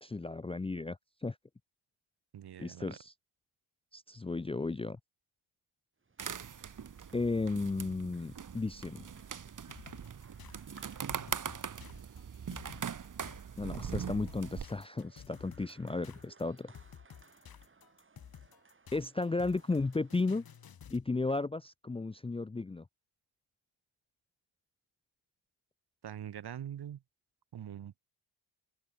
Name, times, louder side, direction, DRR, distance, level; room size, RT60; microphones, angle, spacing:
voice 1, 0.0-1.0 1.2-1.4 2.6-3.1 3.9-5.0 7.1-9.1 13.6-16.7 18.9-20.4 20.9-22.8, left 3 dB, 15° left, 0.6 m, -34 dB
voice 2, 2.3-3.0 26.0-27.0 27.5-28.0, right 10 dB, 55° right, 2.0 m, -43 dB
sound 1, 6.0-20.9, right 4 dB, 25° right, 7.0 m, -64 dB
sound 2, 6.2-14.6, right 7 dB, 40° right, 2.6 m, -41 dB
sound 3, 9.7-21.1, left 8 dB, 50° left, 3.6 m, -53 dB
open air
cardioid pair, 135°, 46 cm